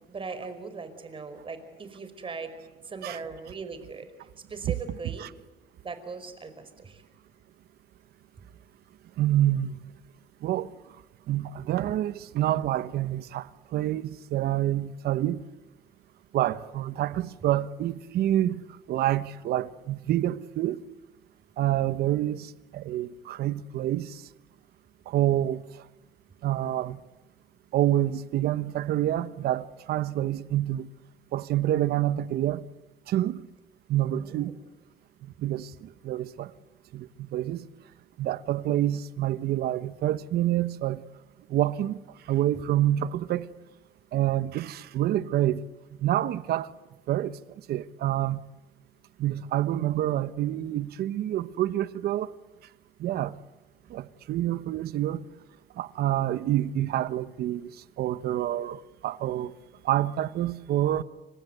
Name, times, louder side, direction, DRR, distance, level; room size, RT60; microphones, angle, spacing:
voice 1, 0.1-2.5 2.8-4.1 4.5-5.3 5.8-7.0 34.1-34.5, right 4 dB, 30° right, 5.1 m, -39 dB
voice 2, 9.2-9.8 10.4-10.7 11.3-15.4 16.3-18.6 18.9-20.8 21.6-24.2 25.1-25.6 26.4-27.0 27.7-30.9 31.3-32.6 33.1-33.4 33.9-34.5 35.4-36.5 36.9-37.6 38.2-41.0 41.5-42.0 42.3-43.5 44.1-45.6 46.0-46.7 47.1-47.4 47.7-48.4 49.2-52.3 53.0-53.4 53.9-55.2 55.8-57.7 58.0-59.5 59.8-61.0, right 13 dB, 70° right, 1.1 m, -27 dB
28.5 x 25.5 x 8.0 m
cardioid pair, 110°, 17 cm